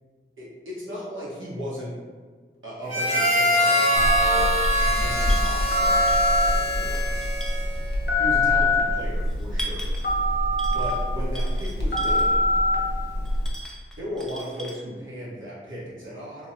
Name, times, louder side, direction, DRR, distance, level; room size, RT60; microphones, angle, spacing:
voice 1, 0.4-1.9 2.6-6.0 6.4-7.3 7.5-7.7 8.2-9.9 10.7-12.5 13.9-16.5, equal, 70° right, -8 dB, 1.1 m, -36 dB
Harmonica, 2.9-7.9, equal, 30° left, 0.9 m, -24 dB
Telephone, 3.9-13.5, left 1 dB, 55° left, 0.7 m, -23 dB
sound 1, 4.3-5.0 5.3-6.4 6.8-7.9 8.6-8.7 9.3-10.2 10.6-11.0 11.3-12.4 13.2-14.7, right 1 dB, ahead, 0.5 m, -40 dB
3.5 x 2.1 x 2.7 m, 1.5 s
cardioid pair, 40°, 21 cm